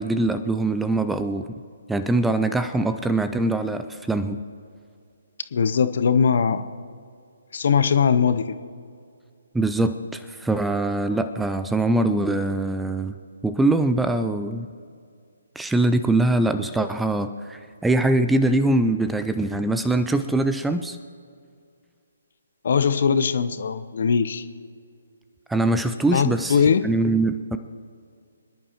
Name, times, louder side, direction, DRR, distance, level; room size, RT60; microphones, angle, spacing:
voice 1, 0.0-1.5 1.9-4.4 9.5-13.1 13.4-14.7 15.6-21.0 25.5-27.6, right 2 dB, 5° right, 10 dB, 0.4 m, -23 dB
voice 2, 5.5-6.7 7.5-8.6 22.6-24.4 26.1-26.8, left 6 dB, 50° left, 12 dB, 0.7 m, -20 dB
26.0 x 11.0 x 3.0 m, 2.3 s
figure-of-eight pair, 135°, 0 cm